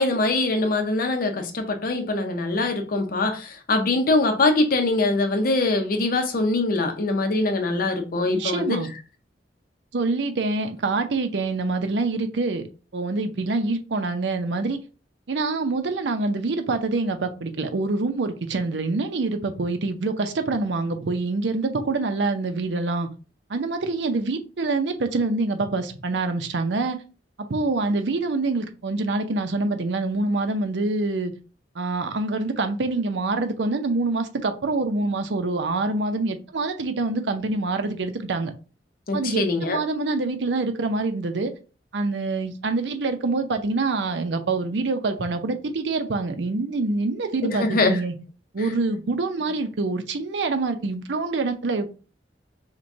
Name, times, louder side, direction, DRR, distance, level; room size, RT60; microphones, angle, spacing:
voice 1, 0.0-8.8 39.1-39.8 47.4-48.0, left 2 dB, 55° left, 0.6 m, -23 dB
voice 2, 8.3-8.9 9.9-12.7 12.9-14.8 15.3-23.1 23.5-27.0 27.5-31.3 31.7-38.5 39.1-41.5 41.9-48.2 48.5-51.9, right 3 dB, 85° right, 0.6 m, -25 dB
5.8 x 2.2 x 2.7 m
head